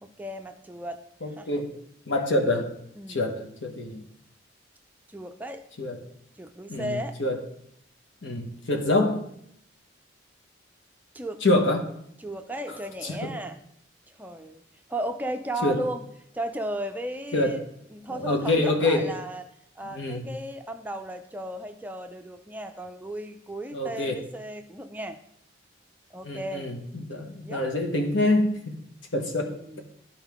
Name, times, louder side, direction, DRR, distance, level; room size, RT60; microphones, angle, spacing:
voice 1, 0.0-1.0 1.4-1.5 3.0-3.2 5.1-5.6 6.4-7.2 11.1-11.4 12.2-13.6 14.2-14.6 14.9-16.0 16.3-17.6 17.9-19.4 19.8-25.2 26.1-26.7 27.1-27.6 29.4-29.8, right 1 dB, 10° right, 6 dB, 0.4 m, -35 dB
voice 2, 1.2-1.7 2.1-2.7 3.1-4.0 5.8-6.0 6.7-7.4 8.2-9.2 11.4-11.9 12.7-13.3 15.6-15.8 17.3-17.6 18.1-19.1 19.9-20.3 23.7-24.2 26.2-28.7 29.1-29.5, left 2 dB, 75° left, 4 dB, 1.3 m, -26 dB
12.0 x 4.4 x 3.6 m, 0.71 s
head